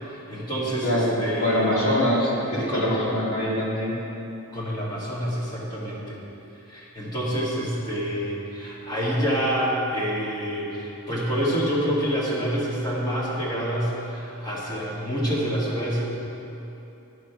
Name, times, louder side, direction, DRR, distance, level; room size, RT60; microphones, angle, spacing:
voice 1, 0.0-1.8 2.5-2.9 4.5-6.2 6.7-16.1, equal, 20° left, -7 dB, 2.2 m, -27 dB
voice 2, 0.8-4.0, left 1 dB, 65° left, -6 dB, 2.3 m, -24 dB
11.0 x 5.8 x 5.8 m, 3.0 s
head